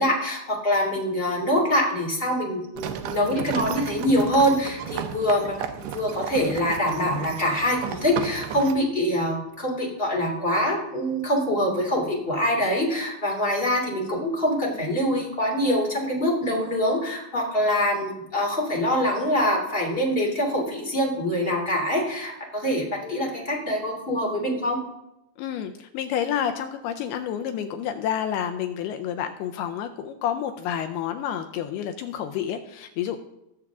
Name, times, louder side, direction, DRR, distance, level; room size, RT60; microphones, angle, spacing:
voice 1, 0.0-5.5 5.8-24.8, equal, 15° left, -2 dB, 2.0 m, -24 dB
sound 1, 2.8-8.7, right 8 dB, 80° right, 2.3 m, -34 dB
voice 2, 25.4-33.2, left 9 dB, 85° left, 8 dB, 2.4 m, -29 dB
19.5 x 7.1 x 3.6 m, 0.86 s
omnidirectional pair, 5.1 m